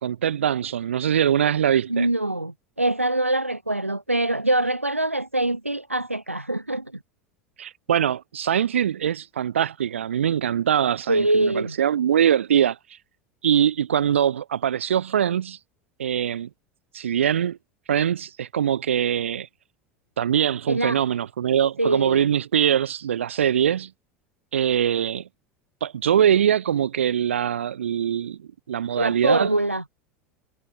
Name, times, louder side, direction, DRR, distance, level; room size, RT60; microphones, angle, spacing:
voice 1, 0.0-2.1 7.6-12.8 13.4-15.6 16.0-16.5 16.9-17.6 17.9-19.5 20.2-23.9 24.5-25.2 25.8-28.4 28.7-29.5, right 9 dB, 70° right, 0.8 m, -22 dB
voice 2, 1.9-6.9 11.1-11.8 20.7-21.0 21.8-22.3 29.0-29.8, right 1 dB, 90° right, 1.4 m, -24 dB
figure-of-eight pair, 80°, 7 cm